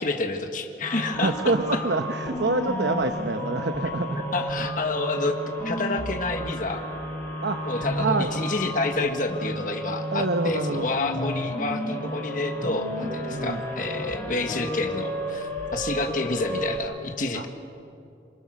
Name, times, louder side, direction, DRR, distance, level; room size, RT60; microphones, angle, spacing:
voice 1, 0.0-1.3 4.3-5.4 5.6-6.8 7.7-17.5, left 3 dB, 45° left, 4 dB, 1.7 m, -29 dB
sound 1, 0.8-16.8, equal, 15° left, 7.8 m, -32 dB
voice 2, 1.2-4.2 7.4-7.6 8.0-8.3 10.1-10.9 13.3-13.6 17.3-17.5, right 2 dB, 70° right, 6 dB, 1.0 m, -26 dB
27.5 x 23.5 x 6.5 m, 2.6 s
head